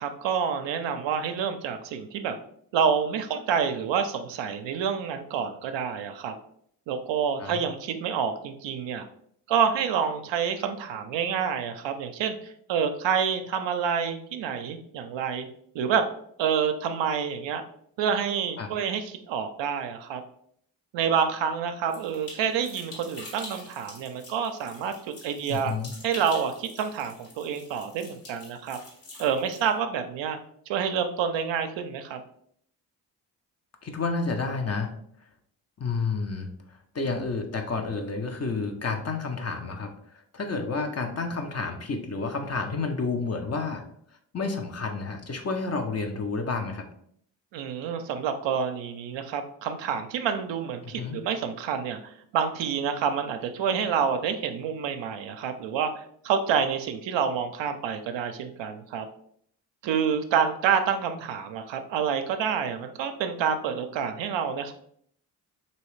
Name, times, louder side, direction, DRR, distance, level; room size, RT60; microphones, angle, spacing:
voice 1, 0.0-2.3 2.7-6.3 6.9-9.1 9.5-15.5 15.7-16.0 16.4-17.6 18.0-20.2 20.9-25.7 26.0-28.8 29.2-30.4 30.7-32.2 47.5-59.1 59.8-64.7, right 7 dB, 65° right, 7 dB, 0.6 m, -28 dB
sound 1, 21.9-29.7, left 2 dB, 60° left, 1.5 m, -46 dB
voice 2, 25.5-25.9 33.8-34.9 35.8-36.5 36.9-39.9 40.3-43.8 44.3-46.9 51.0-51.2, left 4 dB, 30° left, 5 dB, 0.6 m, -30 dB
3.1 x 2.9 x 3.1 m, 0.65 s
hypercardioid pair, 40°, 50 cm